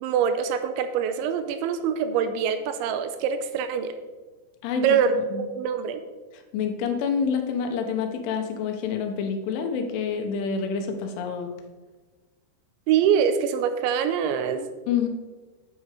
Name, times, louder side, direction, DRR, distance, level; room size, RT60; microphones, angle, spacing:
voice 1, 0.0-3.9 4.8-6.0 12.9-14.7, right 7 dB, 80° right, 9 dB, 3.0 m, -24 dB
voice 2, 4.6-5.5 6.3-11.5 14.9-15.1, left 6 dB, 80° left, 5 dB, 3.5 m, -28 dB
9.5 x 9.5 x 4.9 m, 1.3 s
omnidirectional pair, 5.5 m